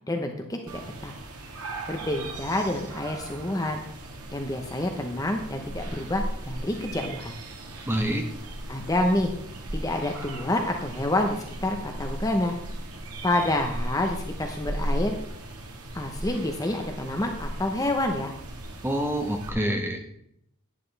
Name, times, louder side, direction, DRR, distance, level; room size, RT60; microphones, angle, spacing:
voice 1, 0.1-1.1 1.9-3.8 4.3-7.4 8.7-9.3 9.7-12.6 13.2-15.2 15.9-18.3, left 1 dB, 15° left, 3 dB, 0.8 m, -28 dB
sound 1, 0.7-19.5, right 1 dB, 90° right, 1.8 m, -37 dB
voice 2, 7.9-8.3 18.8-20.1, equal, 10° right, 4 dB, 1.1 m, -27 dB
11.0 x 10.0 x 3.4 m, 0.73 s
head